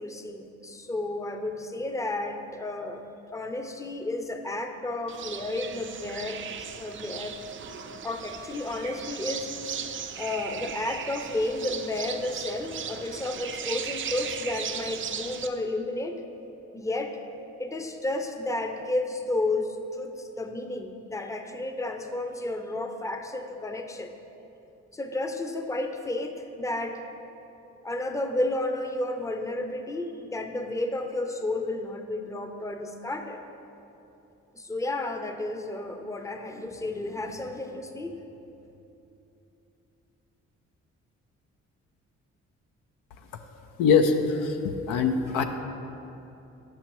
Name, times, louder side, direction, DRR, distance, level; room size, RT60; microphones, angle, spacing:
voice 1, 0.0-3.0 3.3-7.4 8.0-9.5 10.2-16.2 16.7-17.2 17.6-24.1 24.9-27.1 27.8-33.4 34.5-38.2, left 2 dB, 10° left, 6 dB, 0.6 m, -32 dB
sound 1, 5.1-15.5, right 7 dB, 35° right, 0.5 m, -37 dB
voice 2, 43.8-45.4, left 5 dB, 75° left, 6 dB, 0.5 m, -23 dB
8.9 x 5.7 x 3.0 m, 2.9 s
hypercardioid pair, 45°, 33 cm